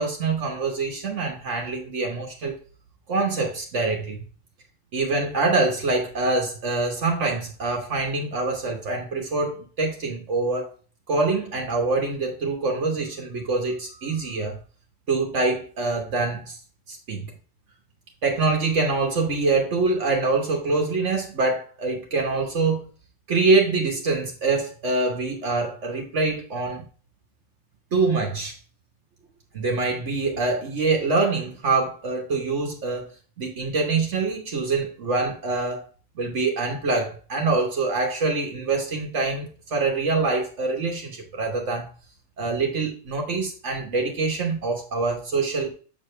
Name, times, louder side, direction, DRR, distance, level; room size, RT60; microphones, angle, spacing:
voice 1, 0.0-2.6 3.1-4.2 4.9-10.7 11.1-14.6 15.1-16.6 16.9-17.3 18.2-22.9 23.3-26.8 27.9-28.5 29.5-35.9 36.2-41.9 42.4-45.7, right 3 dB, 70° right, 1.4 m, -25 dB
6.4 x 5.9 x 3.2 m
omnidirectional pair, 1.3 m